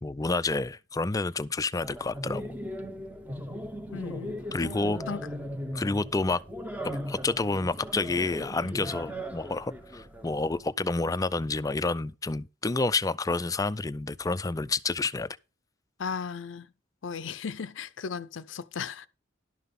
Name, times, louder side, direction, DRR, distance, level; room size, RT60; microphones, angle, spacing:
voice 1, 0.0-2.4 4.5-5.0 5.7-6.4 7.1-15.4, left 3 dB, 20° left, 0.4 m, -29 dB
sound 1, 1.8-10.6, equal, 10° right, 0.8 m, -38 dB
voice 2, 3.9-4.8 5.1-5.3 16.0-16.7 17.0-19.1, left 6 dB, 70° left, 0.5 m, -36 dB
12.0 x 5.8 x 5.3 m
head